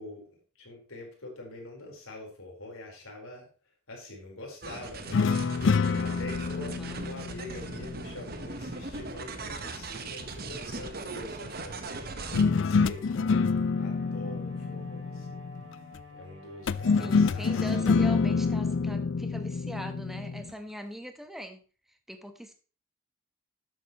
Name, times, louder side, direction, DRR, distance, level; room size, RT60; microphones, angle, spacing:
voice 1, 0.0-3.5 3.9-5.3 6.0-15.4 16.1-18.2, left 1 dB, 80° left, 0 dB, 4.3 m, -45 dB
sound 1, 4.6-12.4, right 3 dB, 45° right, 1.2 m, -39 dB
sound 2, 5.1-8.5 12.3-15.7 16.7-20.5, left 4 dB, 60° left, 0.4 m, -27 dB
voice 2, 6.6-7.0 17.0-21.6 22.1-22.5, equal, ahead, 6 dB, 1.2 m, -41 dB
Bowed string instrument, 10.9-19.3, left 3 dB, 90° right, 3.5 m, -49 dB
12.5 x 8.4 x 3.1 m, 0.37 s
head